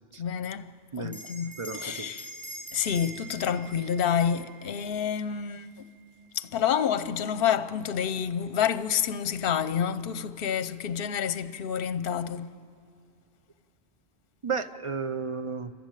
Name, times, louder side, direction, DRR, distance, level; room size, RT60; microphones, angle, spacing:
voice 1, 0.2-0.7 1.0-2.3 2.7-5.7 6.4-12.5, left 8 dB, 60° left, 0.9 m, -28 dB
Bell, 1.1-5.9, right 2 dB, ahead, 5.4 m, -44 dB
voice 2, 1.6-2.1 14.4-15.7, right 5 dB, 35° right, 0.6 m, -33 dB
28.5 x 12.5 x 9.0 m
omnidirectional pair, 1.1 m